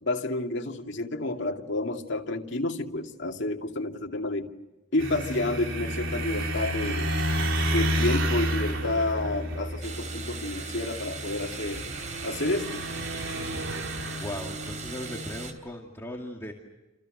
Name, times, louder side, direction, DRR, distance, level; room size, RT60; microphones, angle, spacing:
voice 1, 0.0-4.5 4.9-7.1 7.7-11.8 12.2-12.8, left 2 dB, 60° left, 2 dB, 2.5 m, -30 dB
sound 1, 5.0-15.5, equal, 75° right, 3.8 m, -31 dB
sound 2, 9.8-15.5, right 5 dB, 40° right, 3.6 m, -40 dB
voice 2, 14.1-16.5, left 1 dB, 15° left, -1 dB, 2.4 m, -38 dB
29.5 x 28.0 x 6.6 m, 1.0 s
head